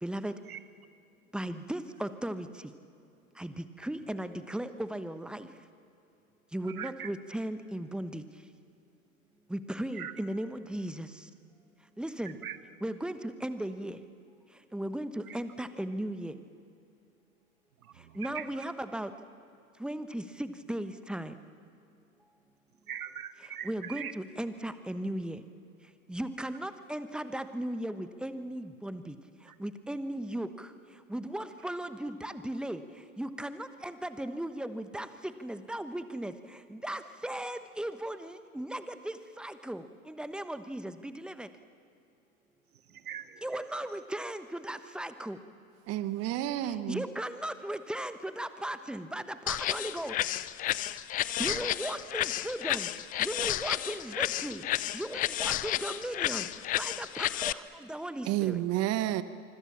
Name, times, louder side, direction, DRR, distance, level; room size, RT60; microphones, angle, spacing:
voice 1, 0.0-0.4 1.3-2.7 3.3-5.5 6.5-8.2 9.5-11.3 12.0-12.4 12.8-14.0 14.7-16.4 18.0-19.1 19.8-21.4 23.6-25.4 26.1-29.2 29.4-41.5 43.4-45.4 46.6-50.4 51.2-58.6, right 1 dB, ahead, 11 dB, 1.1 m, -37 dB
voice 2, 6.7-7.1 9.9-10.1 12.4-12.6 15.3-15.4 17.8-18.7 22.9-24.1 29.5-29.6 42.9-43.4 51.4-51.6, right 9 dB, 80° right, 14 dB, 0.8 m, -41 dB
voice 3, 45.9-47.1 58.2-59.2, right 14 dB, 35° right, 13 dB, 1.2 m, -30 dB
sound 1, 49.5-57.5, left 14 dB, 20° left, 0.5 m, -32 dB
26.0 x 24.5 x 7.4 m, 2.7 s
hypercardioid pair, 100°, 43 cm